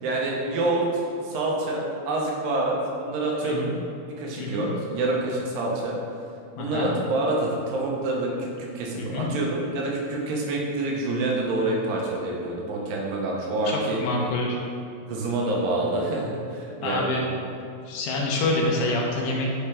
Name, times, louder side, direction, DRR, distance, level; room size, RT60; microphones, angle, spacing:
voice 1, 0.0-3.7 4.2-6.0 6.6-14.0 15.1-17.2, right 2 dB, 85° right, -2 dB, 3.1 m, -27 dB
voice 2, 4.4-4.7 6.6-6.9 9.0-9.3 13.7-14.6 16.8-17.2 17.9-19.5, left 2 dB, 85° left, -1 dB, 3.0 m, -27 dB
8.6 x 5.7 x 3.5 m, 2.5 s
omnidirectional pair, 4.7 m